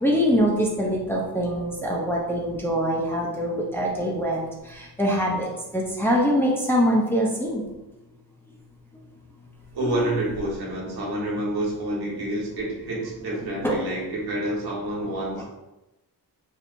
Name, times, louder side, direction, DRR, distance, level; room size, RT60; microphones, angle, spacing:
voice 1, 0.0-4.5 5.0-5.5 5.7-7.6 13.6-13.8, equal, 5° left, -3 dB, 0.5 m, -23 dB
voice 2, 9.7-15.4, right 1 dB, 70° right, -4 dB, 1.4 m, -28 dB
4.6 x 3.3 x 2.5 m, 1.0 s
wide cardioid pair, 145°, 39 cm